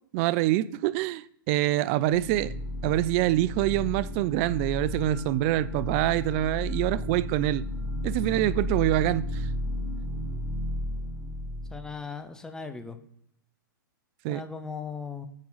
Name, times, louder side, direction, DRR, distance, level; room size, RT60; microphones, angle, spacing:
voice 1, 0.1-2.5 2.8-7.6 8.0-9.5 14.2-14.4, right 15 dB, 40° right, 0.4 m, -25 dB
sound 1, 2.1-11.9, left 1 dB, 25° left, 1.8 m, -33 dB
voice 2, 11.7-13.0 14.3-15.3, left 5 dB, 5° left, 0.7 m, -38 dB
8.8 x 3.8 x 5.6 m
hypercardioid pair, 120°, 11 cm